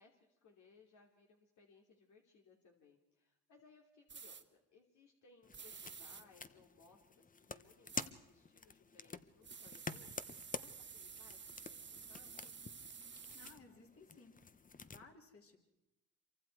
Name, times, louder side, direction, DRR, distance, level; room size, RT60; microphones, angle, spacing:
voice 1, 0.0-12.5, left 4 dB, 70° left, 1 dB, 3.1 m, -66 dB
sound 1, 4.1-4.4 5.5-6.2 7.9-8.1 9.4-13.5, right 6 dB, 35° right, 1.5 m, -52 dB
sound 2, 5.4-15.0, left 5 dB, 25° left, 0.9 m, -49 dB
voice 2, 13.3-14.3 14.8-15.6, left 3 dB, 45° left, 2 dB, 3.9 m, -60 dB
26.5 x 24.0 x 4.7 m, 0.92 s
cardioid pair, 90°, 30 cm